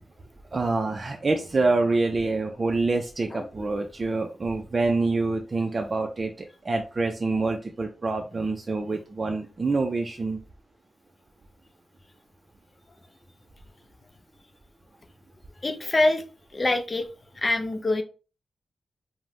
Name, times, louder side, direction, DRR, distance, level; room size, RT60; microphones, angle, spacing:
voice 1, 0.5-10.4, right 3 dB, 45° right, 3 dB, 0.3 m, -26 dB
voice 2, 15.6-16.2 16.5-17.1 17.3-18.0, left 2 dB, 40° left, 6 dB, 0.4 m, -24 dB
2.5 x 2.0 x 3.2 m, 0.35 s
cardioid pair, 45°, 0 cm